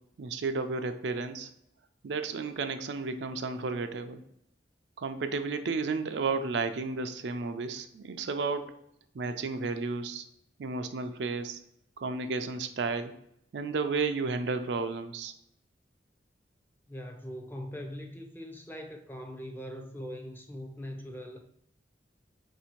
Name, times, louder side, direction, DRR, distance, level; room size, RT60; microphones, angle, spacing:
voice 1, 0.2-1.5 2.0-4.2 5.0-8.8 9.1-10.3 10.6-11.6 12.0-13.1 13.5-15.3, right 4 dB, 70° right, 0.4 m, -32 dB
voice 2, 16.9-21.4, equal, 10° left, 0.5 m, -41 dB
4.1 x 2.7 x 4.4 m
head